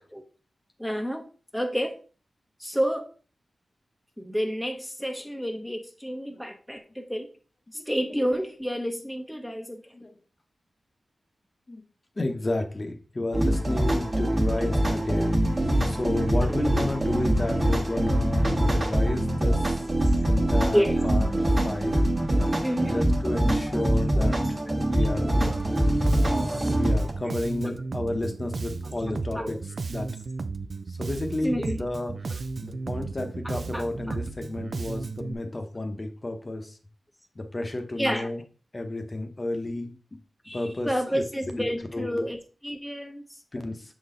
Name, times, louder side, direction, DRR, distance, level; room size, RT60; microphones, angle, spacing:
voice 1, 0.8-1.3 1.5-2.0 2.6-3.1 4.2-7.3 7.7-9.9 14.6-14.7 16.4-16.6 20.7-21.0 22.6-23.0 23.7-23.8 25.0-25.1 25.3-25.6 27.6-27.7 29.1-29.6 31.4-31.9 32.3-32.4 33.4-34.2 38.0-38.3 40.4-43.2, equal, ahead, 4 dB, 0.8 m, -30 dB
voice 2, 12.2-19.6 20.2-22.0 22.7-24.4 24.8-25.3 26.2-29.6 29.9-30.1 31.0-32.1 32.6-36.7 37.4-38.4 38.7-40.0 40.5-41.2 41.9-42.3 43.5-43.8, left 2 dB, 30° left, 5 dB, 0.9 m, -32 dB
sound 1, 13.3-27.1, right 1 dB, 30° right, 1.3 m, -24 dB
Bass guitar, 25.4-35.3, right 4 dB, 60° right, 0.5 m, -34 dB
7.0 x 4.1 x 3.7 m, 0.37 s
wide cardioid pair, 100°, 0 cm